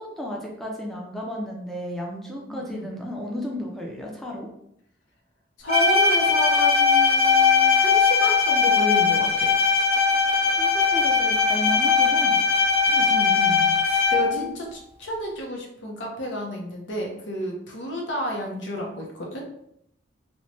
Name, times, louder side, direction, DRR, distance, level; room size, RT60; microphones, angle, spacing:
voice 1, 0.0-4.5 10.6-12.4 14.1-14.5, left 1 dB, ahead, -2 dB, 0.4 m, -33 dB
voice 2, 2.5-3.0 5.6-9.5 12.9-19.5, equal, 75° left, 0 dB, 0.7 m, -31 dB
Bowed string instrument, 5.7-14.4, left 5 dB, 35° left, 0.8 m, -20 dB
3.0 x 2.1 x 2.6 m, 0.76 s
head